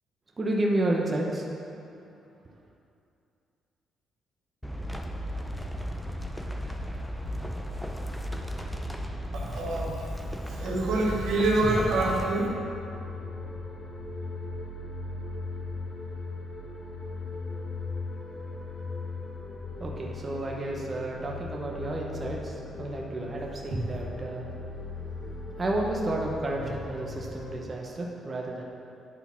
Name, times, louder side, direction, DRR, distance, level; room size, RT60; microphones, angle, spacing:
voice 1, 0.4-1.4 19.8-24.5 25.6-28.6, right 1 dB, 30° right, -2 dB, 1.0 m, -31 dB
sound 1, 4.6-12.2, equal, 5° left, 0.6 m, -35 dB
voice 2, 9.3-10.0 10.6-12.5, right 2 dB, 90° right, -5 dB, 1.8 m, -26 dB
sound 2, 10.7-27.6, left 3 dB, 40° left, 1.5 m, -38 dB
9.7 x 3.9 x 5.8 m, 2.6 s
cardioid pair, 90°, 0 cm